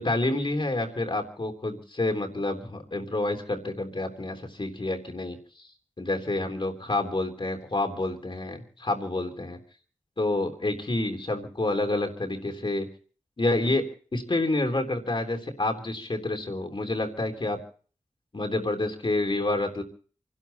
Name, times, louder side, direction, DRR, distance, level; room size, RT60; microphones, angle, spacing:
voice 1, 0.0-5.4 6.0-9.6 10.2-12.9 13.4-17.6 18.3-19.8, left 2 dB, 45° left, 4 dB, 3.5 m, -28 dB
28.5 x 12.0 x 4.2 m, 0.44 s
wide cardioid pair, 70°, 12 cm